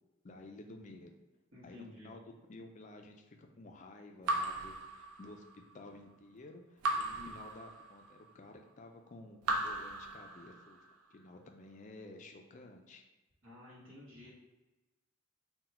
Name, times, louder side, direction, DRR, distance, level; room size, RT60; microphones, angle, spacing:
voice 1, 0.2-1.1 1.6-10.8 11.1-13.0, left 2 dB, 35° left, 3 dB, 0.4 m, -53 dB
voice 2, 1.5-2.1 7.1-7.3 13.4-14.3, left 2 dB, 60° right, -7 dB, 1.2 m, -52 dB
Raindrop / Drip, 4.3-5.6 6.8-8.2 9.4-10.8, right 2 dB, 90° right, 0.5 m, -37 dB
3.9 x 2.3 x 4.2 m, 1.1 s
head